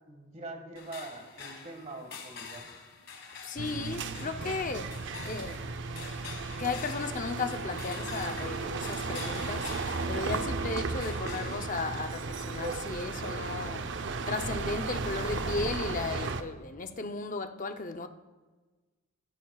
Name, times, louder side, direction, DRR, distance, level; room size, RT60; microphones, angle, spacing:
voice 1, 0.0-2.7, right 2 dB, 35° right, 1.7 m, -43 dB
sound 1, 0.8-14.0, left 5 dB, 65° left, 1.7 m, -47 dB
voice 2, 3.4-5.7 6.6-18.1, left 4 dB, 40° left, 0.6 m, -35 dB
sound 2, 3.6-16.4, right 4 dB, 60° right, 0.6 m, -35 dB
15.5 x 13.5 x 2.4 m
head